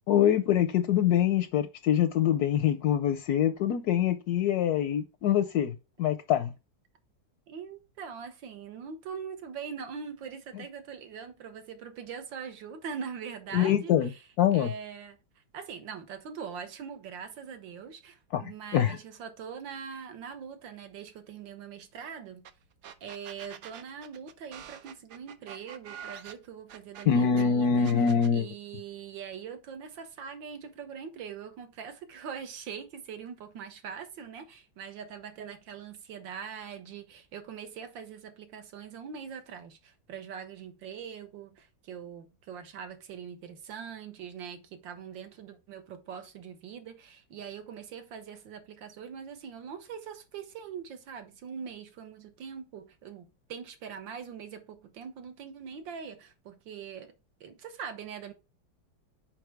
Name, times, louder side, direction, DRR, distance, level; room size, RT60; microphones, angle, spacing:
voice 1, 0.1-6.5 13.5-14.1 14.4-14.7 18.3-19.0 27.1-28.5, left 9 dB, 70° left, 0.9 m, -25 dB
voice 2, 7.5-14.2 14.5-15.2 15.5-22.4 23.0-28.1 28.3-57.1 57.4-58.3, right 7 dB, 85° right, 1.8 m, -42 dB
sound 1, 22.4-22.5 22.8-27.4 27.8-28.3, right 8 dB, 70° right, 1.2 m, -46 dB
5.9 x 5.0 x 4.6 m
omnidirectional pair, 2.0 m